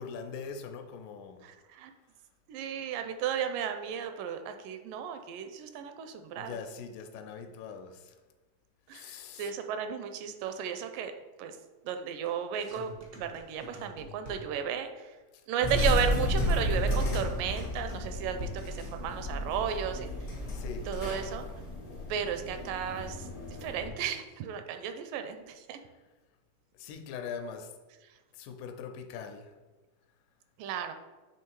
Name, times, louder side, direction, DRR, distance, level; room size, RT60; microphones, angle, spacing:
voice 1, 0.0-1.4 6.4-8.2 8.9-9.5 15.3-15.4 20.5-21.2 26.8-27.7 28.3-29.5, left 6 dB, 80° left, 6 dB, 2.2 m, -42 dB
voice 2, 1.4-1.9 2.5-6.6 8.9-11.1 11.4-11.6 11.8-15.1 15.5-20.1 20.9-21.5 22.1-23.3 23.6-25.8 30.6-30.9, right 8 dB, 80° right, 7 dB, 2.1 m, -34 dB
sound 1, 12.2-14.7 16.3-18.8, equal, 60° right, 0.9 m, -43 dB
sound 2, 15.6-23.9, left 1 dB, 65° left, 0.8 m, -32 dB
8.1 x 3.4 x 4.6 m, 1.2 s
omnidirectional pair, 4.0 m